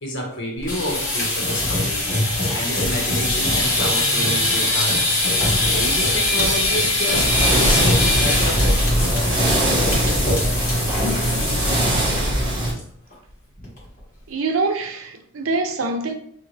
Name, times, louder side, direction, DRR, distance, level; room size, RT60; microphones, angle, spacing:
voice 1, 0.0-2.1 2.5-5.0 5.6-8.6 9.0-9.4, left 1 dB, 60° left, 1.3 m, -29 dB
sound 1, 0.6-12.2 12.5-12.8 13.1-13.2 13.6-14.0, left 2 dB, 40° left, 1.8 m, -22 dB
sound 2, 7.1-12.7, right 1 dB, 25° right, 1.4 m, -21 dB
voice 2, 14.3-16.1, right 3 dB, 85° right, 0.7 m, -24 dB
4.0 x 3.7 x 3.2 m
head